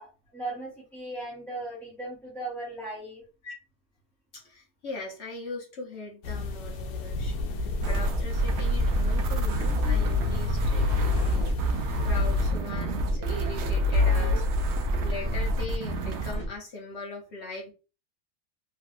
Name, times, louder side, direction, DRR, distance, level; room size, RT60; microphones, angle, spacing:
voice 1, 0.0-3.2, right 2 dB, ahead, -7 dB, 0.6 m, -37 dB
voice 2, 4.3-17.7, left 3 dB, 50° left, -1 dB, 1.0 m, -40 dB
sound 1, 6.2-12.5, left 2 dB, 85° left, 1.1 m, -31 dB
sound 2, 7.8-16.5, left 1 dB, 65° right, 0.7 m, -26 dB
3.1 x 2.6 x 2.4 m, 0.33 s
omnidirectional pair, 1.6 m